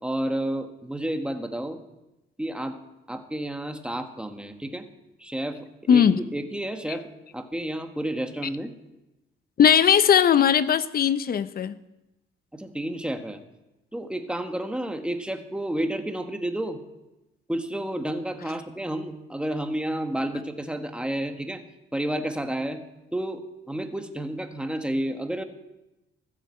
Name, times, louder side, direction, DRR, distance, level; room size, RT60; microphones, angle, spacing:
voice 1, 0.0-1.8 2.4-2.8 3.1-4.9 5.2-5.6 5.9-6.0 6.3-7.0 7.3-8.7 12.5-13.4 13.9-16.8 17.5-21.6 21.9-22.8 23.1-23.4 23.7-25.4, right 1 dB, 5° right, 1.5 m, -30 dB
voice 2, 5.9-6.2 9.6-11.8, left 8 dB, 50° left, 0.7 m, -19 dB
14.0 x 9.0 x 7.8 m
cardioid pair, 90°, 20 cm